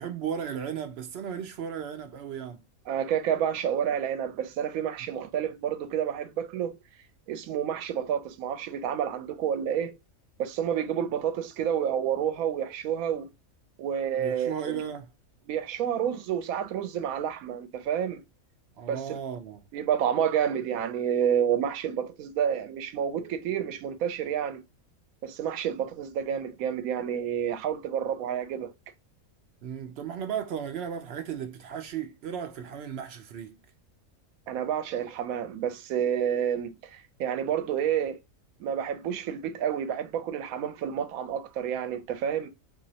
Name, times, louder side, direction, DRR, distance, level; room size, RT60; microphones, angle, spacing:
voice 1, 0.0-2.6 14.2-15.1 18.8-19.6 29.6-33.6, right 8 dB, 65° right, 0.6 m, -35 dB
voice 2, 2.9-6.8 7.3-9.9 10.4-13.3 13.8-14.8 15.5-18.2 18.9-19.0 19.7-24.6 25.2-28.7 34.5-38.2 38.6-42.5, right 9 dB, 85° right, 1.0 m, -29 dB
3.0 x 2.7 x 2.7 m
omnidirectional pair, 1.4 m